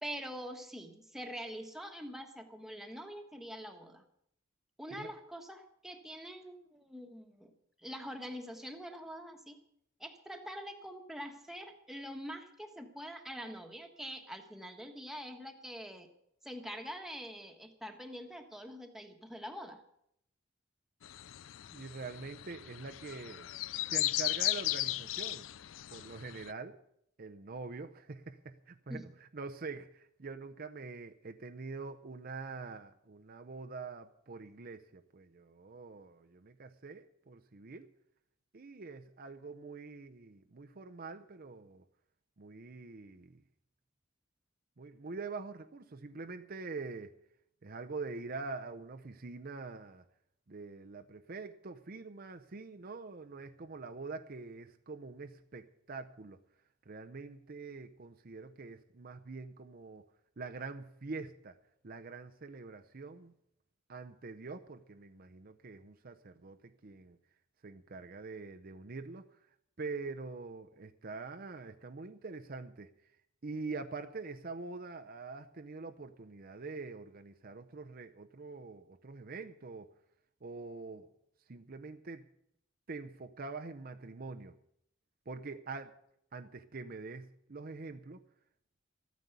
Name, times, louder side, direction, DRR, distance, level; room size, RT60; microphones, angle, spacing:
voice 1, 0.0-4.0 4.8-7.5 7.8-9.6 10.0-16.1 16.4-19.8 28.9-29.1, equal, ahead, 4 dB, 1.4 m, -45 dB
sound 1, 21.0-26.5, left 16 dB, 90° left, 0.4 m, -36 dB
voice 2, 21.7-23.5 23.9-25.5 25.9-26.8 27.2-37.9 38.5-41.8 42.4-43.4 44.8-47.1 47.6-50.0 50.5-56.4 56.9-60.0 60.4-61.6 61.8-63.3 63.9-67.2 67.6-69.2 69.8-72.9 73.4-79.9 80.4-81.1 81.5-82.2 82.9-84.5 85.3-86.0 86.3-88.2, right 4 dB, 50° right, 7 dB, 0.7 m, -45 dB
13.5 x 9.3 x 8.1 m, 0.74 s
head